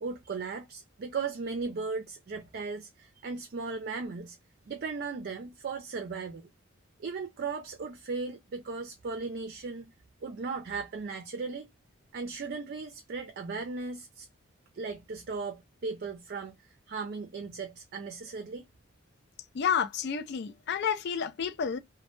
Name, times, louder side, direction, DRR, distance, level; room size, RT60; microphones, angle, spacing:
voice 1, 0.0-4.4 4.7-6.4 7.0-9.9 10.2-11.7 12.1-14.3 14.7-16.5 16.9-18.7, right 4 dB, 50° right, 0.4 m, -37 dB
voice 2, 19.5-21.8, left 7 dB, 55° left, 0.4 m, -30 dB
2.1 x 2.0 x 3.0 m
head